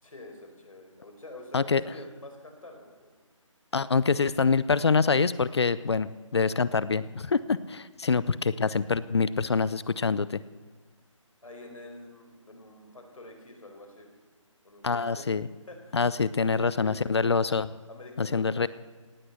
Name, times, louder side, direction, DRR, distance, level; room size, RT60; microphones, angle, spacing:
voice 1, 0.0-3.2 11.4-14.1 14.6-15.3 15.7-16.0 16.4-17.2 17.9-18.7, left 2 dB, 90° left, 3 dB, 4.8 m, -47 dB
voice 2, 3.7-10.4 14.8-15.5 15.9-17.7 18.2-18.7, left 5 dB, 55° left, 17 dB, 0.6 m, -25 dB
18.0 x 8.9 x 7.9 m, 1.4 s
hypercardioid pair, 170°, 17 cm